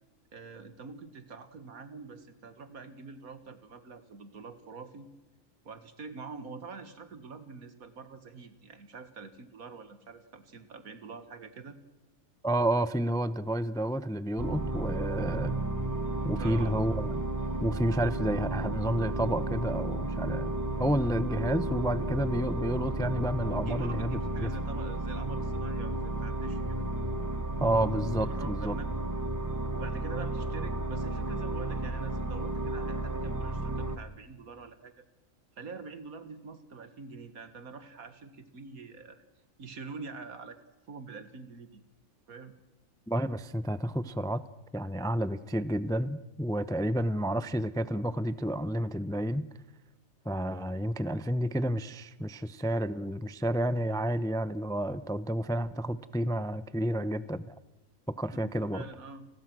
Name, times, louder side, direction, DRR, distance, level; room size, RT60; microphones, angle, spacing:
voice 1, 0.3-5.1 5.7-11.8 16.4-16.7 23.5-26.9 28.2-28.9 29.7-35.0 35.6-39.2 39.6-40.6 40.9-41.8 42.3-42.5 58.4-59.3, right 4 dB, 80° right, 11 dB, 2.2 m, -45 dB
voice 2, 12.4-15.5 16.2-17.2 17.6-20.5 20.8-24.5 27.6-28.8 43.1-44.4 44.7-49.5 50.3-57.5 58.2-58.8, right 1 dB, 5° left, 15 dB, 0.4 m, -30 dB
sound 1, 14.4-34.0, right 2 dB, 15° right, 0.9 m, -33 dB
30.0 x 20.5 x 6.2 m, 0.99 s
omnidirectional pair, 1.5 m